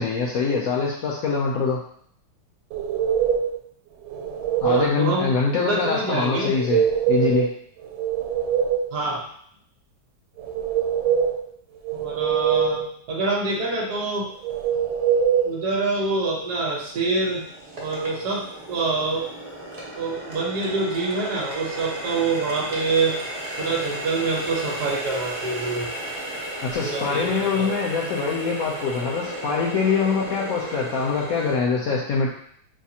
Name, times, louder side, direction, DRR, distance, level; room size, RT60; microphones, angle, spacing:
voice 1, 0.0-1.8 4.6-6.8 7.1-7.5 26.6-32.3, left 5 dB, 85° left, -3 dB, 0.7 m, -24 dB
sound 1, 2.7-3.6 4.0-4.9 6.5-7.5 7.8-9.0 10.4-11.4 11.8-12.9 14.4-15.5, right 8 dB, 80° right, 1.4 m, -23 dB
voice 2, 4.6-5.3 5.6-6.5 8.9-9.2 11.9-12.8 13.1-14.3 15.4-17.4 17.8-19.3 19.9-23.2 23.6-25.9 26.8-27.7, right 3 dB, 60° right, -1 dB, 1.2 m, -26 dB
Water tap faucet, 15.1-15.2 15.7-31.6, right 1 dB, 40° right, 0.6 m, -35 dB
5.7 x 2.4 x 2.8 m, 0.63 s
omnidirectional pair, 2.1 m